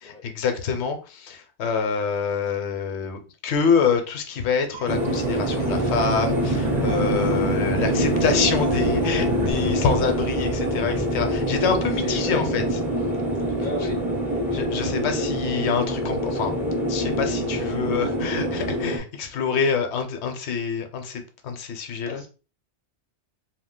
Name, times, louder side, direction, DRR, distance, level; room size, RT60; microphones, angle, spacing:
voice 1, 0.0-12.6 14.5-16.5 16.9-22.2, left 6 dB, 75° left, 6 dB, 0.9 m, -26 dB
sound 1, 4.7-9.5, right 4 dB, 55° right, 0.6 m, -28 dB
sound 2, 4.9-19.0, equal, 5° right, 0.4 m, -25 dB
voice 2, 12.0-12.7 13.6-14.0 15.2-15.3 22.0-22.3, left 3 dB, 55° left, 1 dB, 0.5 m, -34 dB
2.4 x 2.2 x 3.6 m, 0.35 s
omnidirectional pair, 1.2 m